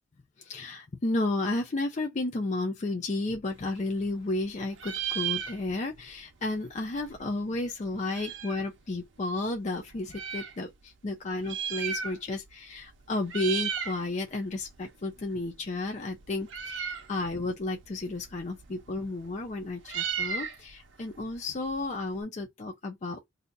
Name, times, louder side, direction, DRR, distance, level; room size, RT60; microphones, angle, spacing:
voice 1, 0.4-23.3, left 2 dB, 35° left, 0.5 m, -32 dB
Meow, 3.5-4.5 4.7-6.0 6.3-6.4 6.6-8.7 9.3-10.5 11.3-12.5 12.8-13.0 13.2-14.0 14.4-22.2, right 8 dB, 65° right, 0.5 m, -36 dB
2.7 x 2.2 x 3.8 m
head